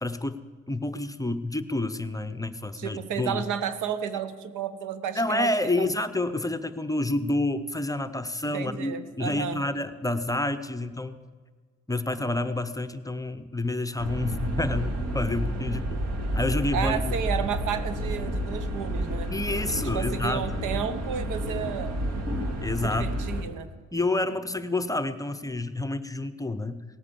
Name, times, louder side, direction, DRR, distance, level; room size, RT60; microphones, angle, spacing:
voice 1, 0.0-3.4 5.1-11.2 11.9-16.0 16.3-17.2 19.3-20.6 22.6-23.1 23.9-26.8, left 2 dB, 10° left, 11 dB, 0.7 m, -29 dB
voice 2, 2.8-5.9 8.4-9.6 16.7-19.3 19.7-22.0 22.8-23.7, right 8 dB, 85° right, 12 dB, 1.0 m, -32 dB
sound 1, 14.0-23.4, equal, 55° right, 2.2 m, -30 dB
17.5 x 8.8 x 6.9 m, 1.5 s
cardioid pair, 90°, 30 cm